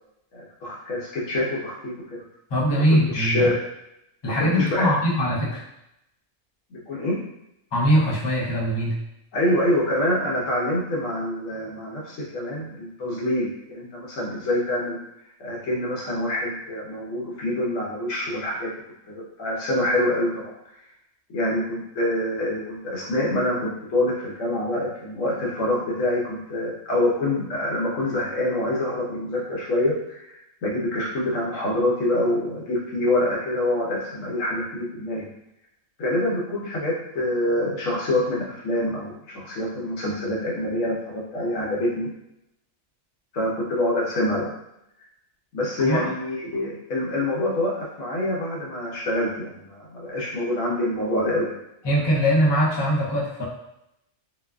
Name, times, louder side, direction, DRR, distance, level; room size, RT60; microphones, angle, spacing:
voice 1, 0.3-2.2 3.1-3.6 4.2-4.9 6.7-7.2 9.3-15.0 15.4-18.7 19.1-20.5 21.3-35.3 36.0-42.1 43.3-44.5 45.5-51.6, left 1 dB, 85° left, -4 dB, 1.1 m, -26 dB
voice 2, 2.5-3.5 4.2-5.6 7.7-8.9 45.8-46.1 51.8-53.5, equal, 35° left, -5 dB, 0.4 m, -21 dB
2.7 x 2.3 x 2.2 m, 0.83 s
omnidirectional pair, 1.3 m